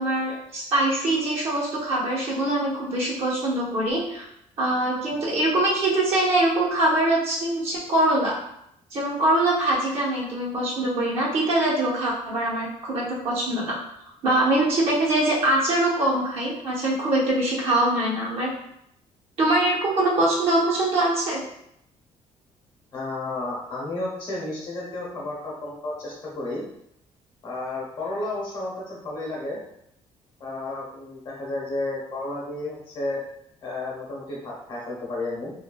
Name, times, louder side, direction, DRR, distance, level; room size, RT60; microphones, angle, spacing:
voice 1, 0.0-4.3 4.6-8.3 8.9-13.8 14.2-18.5 19.4-21.4, right 1 dB, 55° right, -6 dB, 0.9 m, -23 dB
voice 2, 22.9-26.6 27.4-29.6 30.4-33.2 33.6-35.5, left 2 dB, 40° left, -5 dB, 0.8 m, -32 dB
3.1 x 2.2 x 2.2 m, 0.76 s
cardioid pair, 135°, 12 cm